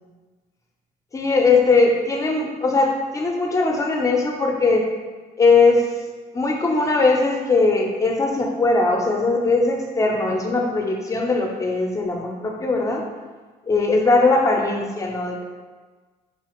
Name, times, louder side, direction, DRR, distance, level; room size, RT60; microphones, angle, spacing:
voice 1, 1.1-4.9 5.4-5.9 6.3-13.0 13.6-15.4, left 3 dB, 20° left, 1 dB, 0.6 m, -20 dB
4.8 x 2.4 x 3.0 m, 1.4 s
cardioid pair, 110°, 17 cm